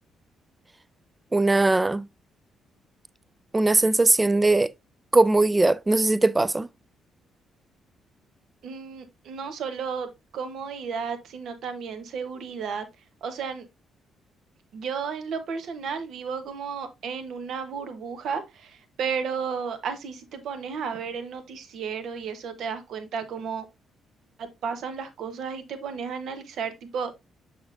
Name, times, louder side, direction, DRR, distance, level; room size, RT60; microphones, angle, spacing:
voice 1, 1.3-2.0 3.5-4.7 5.1-6.7, right 2 dB, 15° right, 0.4 m, -20 dB
voice 2, 8.6-12.9 13.2-13.6 14.7-23.7 24.4-27.1, right 6 dB, 70° right, 1.1 m, -33 dB
6.9 x 5.9 x 2.5 m
cardioid pair, 90°, 0 cm